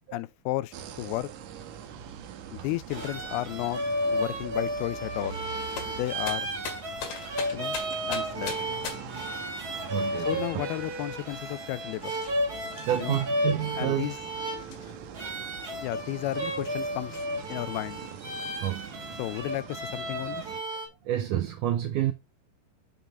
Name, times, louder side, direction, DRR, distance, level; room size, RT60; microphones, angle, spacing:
voice 1, 0.1-1.3 2.5-3.8 4.1-5.4 5.9-6.5 7.5-7.8 8.1-8.6 10.3-12.1 13.0-13.2 13.8-14.2 15.8-17.2 17.5-18.0 19.2-20.4, left 17 dB, 85° left, 2.5 m, -33 dB
sound 1, 0.7-20.6, right 8 dB, 70° right, 2.0 m, -44 dB
sound 2, 2.7-20.9, equal, 30° right, 2.3 m, -33 dB
sound 3, 5.7-9.3 10.1-10.8 11.2-11.3 11.8-13.2 14.0-15.2 15.9-16.0 16.4-16.5 17.1-17.6 18.0-18.9, left 6 dB, 65° left, 3.3 m, -41 dB
voice 2, 9.8-10.4 12.8-14.1 18.6-18.9 21.1-22.1, right 11 dB, 85° right, 1.8 m, -29 dB
7.5 x 5.7 x 3.7 m
omnidirectional pair, 4.4 m